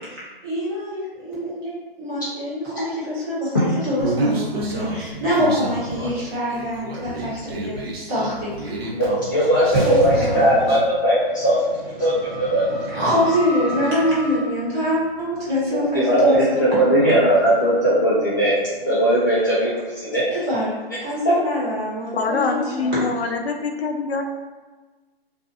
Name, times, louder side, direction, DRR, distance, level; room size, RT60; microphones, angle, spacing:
voice 1, 0.4-8.7 9.3-10.8 12.7-17.2 20.3-20.7 21.0-23.0, equal, 25° right, -9 dB, 1.0 m, -25 dB
Human voice, 4.0-10.8, right 2 dB, 75° right, 0.8 m, -30 dB
voice 2, 8.9-11.5 12.0-12.6 15.9-18.5 18.9-20.2, right 1 dB, 20° left, -10 dB, 0.3 m, -18 dB
sound 1, 9.7-19.3, right 1 dB, 50° right, 1.1 m, -32 dB
voice 3, 22.1-24.2, left 4 dB, 85° left, 4 dB, 0.5 m, -24 dB
2.6 x 2.4 x 2.4 m, 1.3 s
hypercardioid pair, 145°, 31 cm